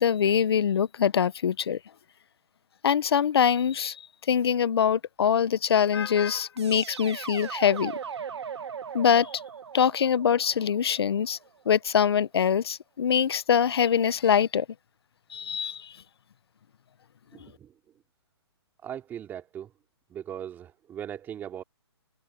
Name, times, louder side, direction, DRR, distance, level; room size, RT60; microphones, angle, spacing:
voice 1, 0.0-1.8 2.8-4.0 4.3-7.9 8.9-9.3 9.7-11.4 11.6-14.7 15.3-15.9, left 8 dB, 65° left, 1.0 m, -23 dB
sound 1, 6.6-11.5, right 7 dB, 70° right, 1.5 m, -39 dB
voice 2, 17.3-17.7 18.8-19.7 20.1-21.6, right 10 dB, 15° right, 2.9 m, -39 dB
hypercardioid pair, 150°, 14 cm